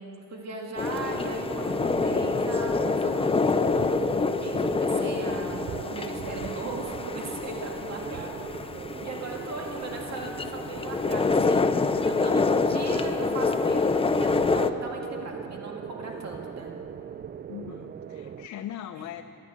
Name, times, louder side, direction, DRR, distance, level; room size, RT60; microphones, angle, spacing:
voice 1, 0.0-3.5 4.1-13.9 14.2-16.7, right 3 dB, 60° right, 1 dB, 2.2 m, -38 dB
sound 1, 0.8-14.7, left 4 dB, 20° left, 0.6 m, -27 dB
sound 2, 0.9-18.5, right 8 dB, 35° right, 0.4 m, -39 dB
voice 2, 17.5-19.2, left 11 dB, 65° left, 6 dB, 0.6 m, -40 dB
14.0 x 12.5 x 7.6 m, 2.9 s
cardioid pair, 90°, 30 cm